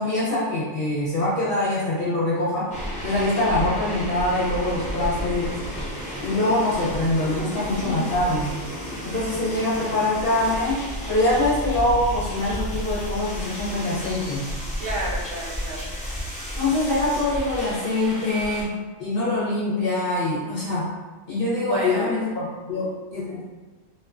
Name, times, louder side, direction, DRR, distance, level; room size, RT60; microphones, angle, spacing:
voice 1, 0.0-2.7 3.0-5.6 6.2-8.5 9.0-14.5 16.6-18.7 19.0-20.9 21.3-23.4, left 2 dB, 50° left, -9 dB, 0.8 m, -24 dB
sound 1, 2.7-18.6, equal, 10° left, 0.5 m, -32 dB
voice 2, 7.5-8.1 14.8-15.9 21.5-22.1, right 1 dB, 55° right, -8 dB, 0.7 m, -31 dB
2.3 x 2.3 x 2.3 m, 1.3 s
omnidirectional pair, 1.4 m